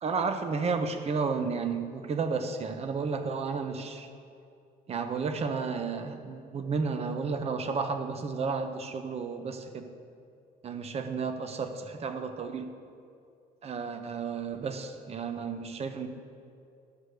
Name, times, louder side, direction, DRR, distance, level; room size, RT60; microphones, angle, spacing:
voice 1, 0.0-4.1 4.9-9.9 10.6-12.7 13.6-16.1, right 5 dB, 40° right, 8 dB, 0.7 m, -32 dB
12.5 x 6.4 x 3.2 m, 2.4 s
cardioid pair, 110°, 17 cm